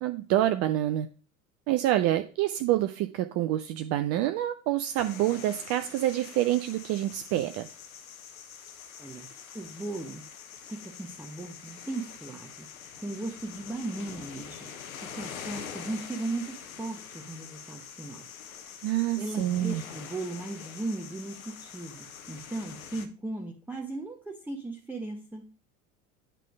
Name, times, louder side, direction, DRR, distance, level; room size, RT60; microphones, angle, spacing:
voice 1, 0.0-1.1 1.7-7.7 18.8-19.8, right 13 dB, 35° right, 9 dB, 0.5 m, -27 dB
sound 1, 5.0-23.1, left 7 dB, 70° left, 0.9 m, -45 dB
voice 2, 9.0-9.3 9.5-10.2 10.7-12.7 13.0-14.7 15.1-18.3 19.2-25.5, right 2 dB, 5° right, 0 dB, 0.9 m, -37 dB
9.2 x 3.3 x 5.1 m, 0.37 s
figure-of-eight pair, 75°, 43 cm